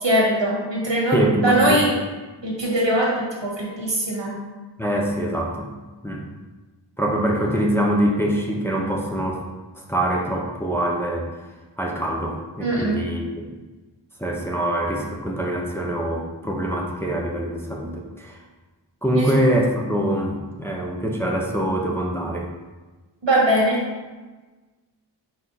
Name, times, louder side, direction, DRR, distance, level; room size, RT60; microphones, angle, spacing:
voice 1, 0.0-1.9 2.4-4.3 12.6-13.0 19.1-19.3 23.2-23.8, right 1 dB, 85° right, -4 dB, 1.9 m, -21 dB
voice 2, 1.1-1.8 4.8-5.7 6.0-6.2 7.0-9.4 9.9-11.3 11.8-13.5 14.2-18.4 19.0-22.5, right 1 dB, 5° left, -2 dB, 0.9 m, -24 dB
4.9 x 4.7 x 4.1 m, 1.2 s
wide cardioid pair, 60°, 43 cm